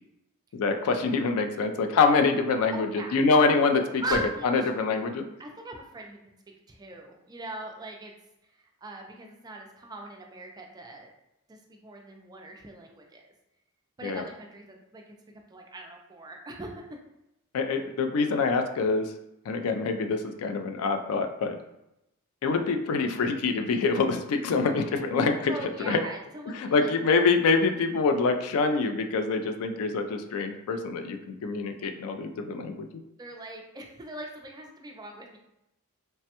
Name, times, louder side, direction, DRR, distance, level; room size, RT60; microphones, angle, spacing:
voice 1, 0.5-2.9 3.1-4.0 4.4-5.3 14.0-14.2 17.5-19.1 19.5-21.6 22.4-25.5 25.8-26.0 26.5-32.9, left 4 dB, 65° left, 6 dB, 0.3 m, -25 dB
voice 2, 1.4-1.9 2.7-3.2 4.0-4.7 5.4-6.3 6.7-8.1 8.4-11.1 11.5-13.3 14.0-15.2 15.5-16.9 25.5-26.9 33.2-35.4, right 1 dB, 15° right, 1 dB, 0.3 m, -40 dB
3.2 x 2.1 x 2.8 m, 0.87 s
head